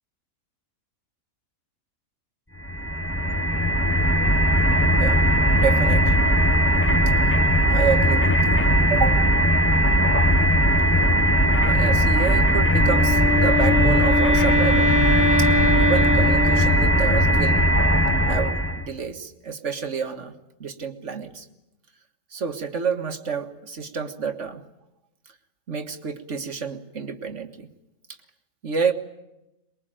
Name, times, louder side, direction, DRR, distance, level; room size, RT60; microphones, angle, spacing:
sound 1, 2.6-18.8, equal, 10° left, 1.1 m, -19 dB
voice 1, 5.5-6.3 7.1-7.2 7.7-8.6 8.9-9.2 11.5-14.9 15.4-15.5 15.8-17.6 18.3-20.3 20.6-21.5 22.3-24.6 25.7-27.7 28.6-28.9, right 6 dB, 60° right, 8 dB, 1.9 m, -29 dB
Wind instrument woodwind instrument, 12.6-17.2, left 2 dB, 40° left, 1.4 m, -24 dB
23.0 x 21.5 x 9.1 m, 0.91 s
omnidirectional pair, 1.5 m